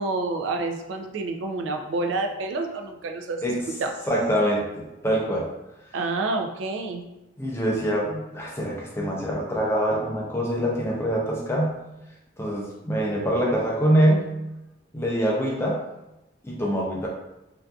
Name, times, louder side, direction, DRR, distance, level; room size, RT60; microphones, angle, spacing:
voice 1, 0.0-3.4 3.8-3.9 5.9-7.0, right 3 dB, 75° right, 4 dB, 0.3 m, -28 dB
voice 2, 4.1-5.5 7.4-11.8 12.4-14.3 14.9-15.8 16.4-17.1, right 1 dB, 15° left, -3 dB, 0.4 m, -24 dB
2.5 x 2.3 x 2.2 m, 0.95 s
head